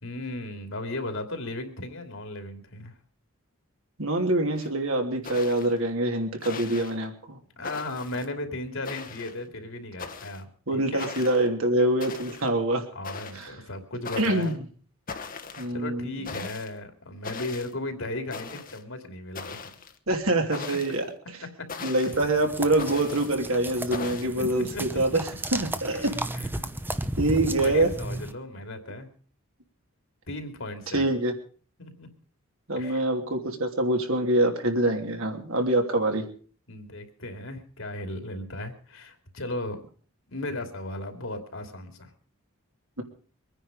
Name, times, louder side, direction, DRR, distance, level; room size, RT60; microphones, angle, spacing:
voice 1, 0.0-2.9 7.6-11.1 12.9-14.6 15.7-19.7 21.6-21.7 22.1-22.2 24.2-25.0 25.9-26.1 26.3-26.8 27.3-29.1 30.3-31.1 31.8-32.1 32.8-33.0 36.7-39.8 40.3-42.1, left 2 dB, 60° left, 6 dB, 2.8 m, -36 dB
voice 2, 4.0-7.4 10.7-12.8 13.3-13.5 14.2-14.5 15.6-16.5 20.1-21.1 21.8-25.1 25.5-26.2 27.2-27.9 30.9-31.3 32.7-36.2, right 1 dB, 70° right, 3 dB, 3.0 m, -25 dB
sound 1, 4.6-4.7 5.2-5.8 6.4-7.0 7.6-8.3 8.8-9.4 10.0-10.4 11.0-11.5 12.0-12.5 13.0-13.5 14.1-14.5 15.1-15.7 16.3-16.7 17.2-17.7 18.3-18.8 19.4-20.0 20.5-21.0 21.7-22.2 22.8-23.4 23.9-24.3, left 5 dB, 40° left, 1.3 m, -39 dB
sound 2, 22.1-28.3, right 1 dB, 10° right, 0.8 m, -34 dB
24.0 x 10.0 x 5.2 m, 0.42 s
head